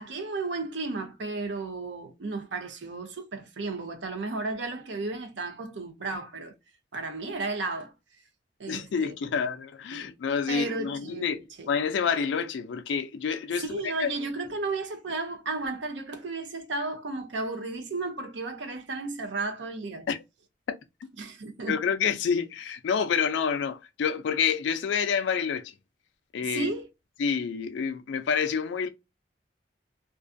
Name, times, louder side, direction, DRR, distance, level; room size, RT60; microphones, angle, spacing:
voice 1, 0.0-6.5 6.9-7.9 8.6-9.2 9.9-10.1 10.5-11.7 13.6-20.1 21.2-21.8 26.4-26.9, right 3 dB, 90° right, 0.6 m, -34 dB
voice 2, 8.7-14.1 20.1-20.2 21.6-25.7 26.3-26.7 27.2-28.9, left 6 dB, 85° left, 0.4 m, -28 dB
2.4 x 2.3 x 2.4 m
head